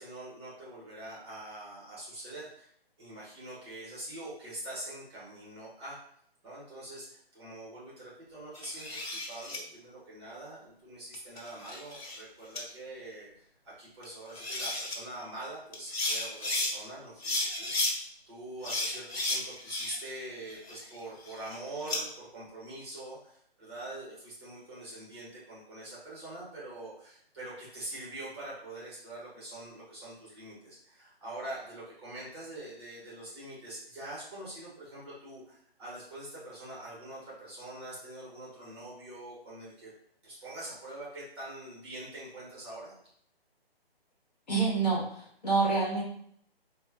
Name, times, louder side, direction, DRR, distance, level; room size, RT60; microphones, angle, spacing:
voice 1, 0.0-2.7 3.0-6.0 6.4-39.9 40.2-42.9, right 1 dB, 25° right, -7 dB, 1.1 m, -44 dB
sound 1, 8.5-9.6 11.1-12.2 12.5-12.6 14.0-14.1 14.3-15.0 15.7-16.7 17.2-17.9 18.6-20.1 20.5-22.0, left 2 dB, 85° left, 1.2 m, -33 dB
voice 2, 44.5-46.0, right 4 dB, 45° left, -4 dB, 1.1 m, -27 dB
4.1 x 2.2 x 2.3 m, 0.68 s
hypercardioid pair, 165°, 31 cm